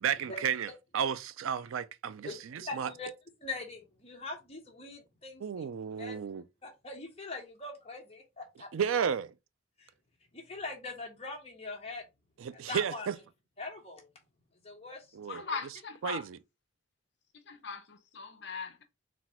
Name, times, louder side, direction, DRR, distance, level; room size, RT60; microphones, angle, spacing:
voice 1, 0.0-2.9 5.4-6.4 8.7-9.3 12.4-13.1 15.1-15.4 16.0-16.4, right 7 dB, 80° right, 0.4 m, -33 dB
voice 2, 2.2-3.1 3.4-5.7 6.0-6.2 6.6-8.7 9.8-9.9 10.3-12.0 12.5-13.1 13.6-14.1 14.6-15.1 15.4-15.5, left 3 dB, 30° left, 1.2 m, -42 dB
voice 3, 15.3-16.3 17.5-18.8, left 5 dB, 55° left, 0.7 m, -40 dB
4.0 x 2.4 x 4.2 m
head